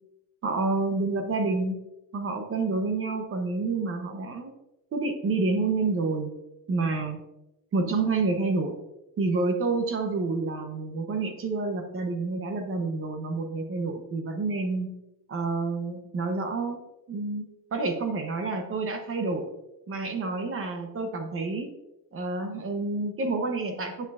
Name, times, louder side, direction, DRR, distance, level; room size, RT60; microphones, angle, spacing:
voice 1, 0.4-1.8 2.1-4.5 4.9-6.3 6.7-7.2 7.7-8.8 9.2-14.9 15.3-16.8 17.1-19.5 19.9-21.7 22.1-24.0, right 3 dB, 30° right, 5 dB, 0.8 m, -28 dB
8.4 x 6.5 x 2.4 m, 0.91 s
cardioid pair, 155°, 46 cm